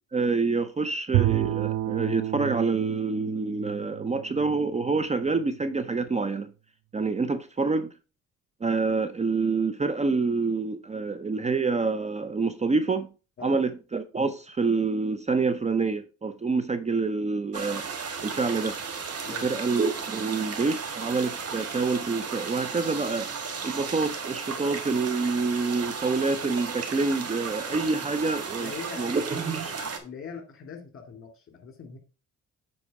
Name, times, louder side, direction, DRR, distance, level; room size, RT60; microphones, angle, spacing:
voice 1, 0.1-6.5 6.9-7.9 8.6-13.1 13.4-17.8 18.2-18.8 19.4-23.3 23.6-28.7 29.0-29.7, right 4 dB, 25° right, 0.6 m, -27 dB
Bowed string instrument, 1.1-5.4, right 16 dB, 70° right, 0.4 m, -30 dB
sound 1, 17.5-30.0, right 5 dB, 55° right, 1.6 m, -35 dB
voice 2, 28.6-29.1 29.8-32.0, left 6 dB, 45° left, 2.3 m, -41 dB
8.3 x 4.1 x 4.7 m
cardioid pair, 90°, 30 cm